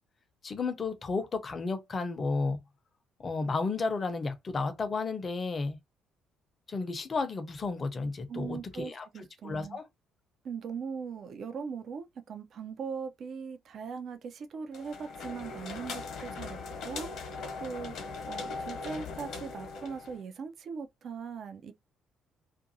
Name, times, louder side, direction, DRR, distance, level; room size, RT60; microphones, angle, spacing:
voice 1, 0.4-2.6 3.2-5.8 6.7-9.0 9.4-9.8, left 4 dB, 35° left, 0.7 m, -32 dB
voice 2, 8.3-9.8 10.4-16.6 16.8-17.3 17.6-17.9 18.3-21.7, right 6 dB, 50° right, 0.4 m, -40 dB
sound 1, 14.7-20.2, left 4 dB, 55° left, 1.0 m, -40 dB
2.5 x 2.5 x 2.6 m
figure-of-eight pair, 45°, 0 cm